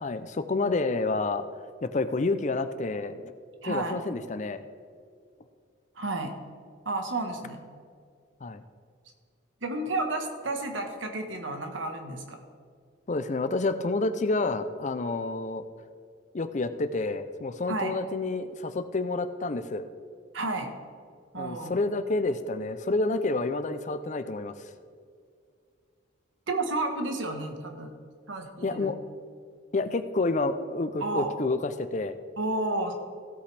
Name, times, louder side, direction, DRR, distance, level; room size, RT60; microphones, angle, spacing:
voice 1, 0.0-1.5 1.8-3.3 3.6-4.7 8.4-8.6 13.1-15.6 16.3-19.9 21.4-24.5 28.6-29.0 29.7-32.2, left 3 dB, 40° left, 11 dB, 0.5 m, -29 dB
voice 2, 3.6-4.0 6.0-6.3 6.8-7.6 9.6-12.4 17.7-17.9 20.3-20.7 21.3-21.8 26.5-27.9 28.3-28.9 31.0-31.3 32.4-32.9, right 2 dB, 80° right, 4 dB, 1.4 m, -31 dB
16.0 x 8.2 x 3.4 m, 2.2 s
head